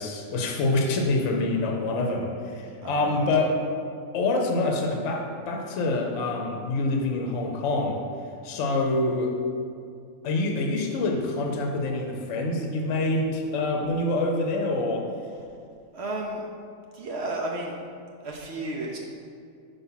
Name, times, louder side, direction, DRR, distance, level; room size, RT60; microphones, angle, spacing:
voice 1, 0.0-3.6 4.1-8.0 8.4-9.3 10.2-15.1, left 2 dB, 65° left, 2 dB, 1.0 m, -26 dB
voice 2, 2.8-3.3 15.9-16.4 16.9-17.7 18.2-19.0, right 2 dB, 60° right, -1 dB, 0.8 m, -32 dB
5.8 x 3.5 x 5.5 m, 2.4 s
omnidirectional pair, 1.5 m